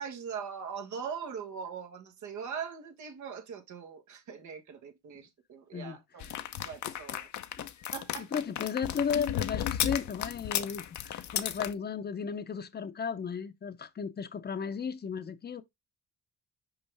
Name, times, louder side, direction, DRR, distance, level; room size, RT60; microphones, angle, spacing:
voice 1, 0.0-6.3 6.6-7.3 7.9-8.3, right 7 dB, 75° right, 1.5 m, -41 dB
voice 2, 5.7-6.4 6.9-7.0 7.6-7.7 8.2-15.6, left 6 dB, 35° left, 0.8 m, -35 dB
sound 1, 6.2-11.7, left 10 dB, 70° left, 0.8 m, -34 dB
5.5 x 5.2 x 3.4 m
cardioid pair, 90°, 30 cm